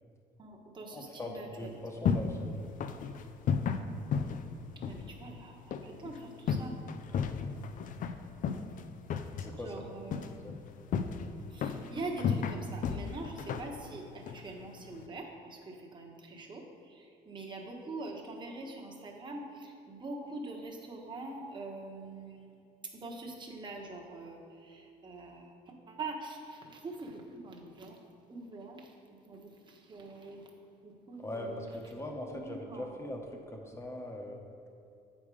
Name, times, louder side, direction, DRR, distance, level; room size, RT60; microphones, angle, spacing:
voice 1, 0.4-1.7 4.8-6.7 9.6-10.3 11.5-22.5 22.9-25.6 25.9-28.0 28.3-28.9 29.3-30.4 30.8-31.7 32.3-32.8, right 2 dB, 25° right, 0 dB, 1.2 m, -44 dB
voice 2, 0.9-2.6 7.1-7.4 9.4-9.8 10.1-10.5 31.2-34.4, left 1 dB, 15° left, 2 dB, 1.1 m, -41 dB
sound 1, 1.6-15.1, left 6 dB, 50° left, 0.5 m, -35 dB
8.1 x 5.4 x 4.8 m, 2.6 s
cardioid pair, 110°, 17 cm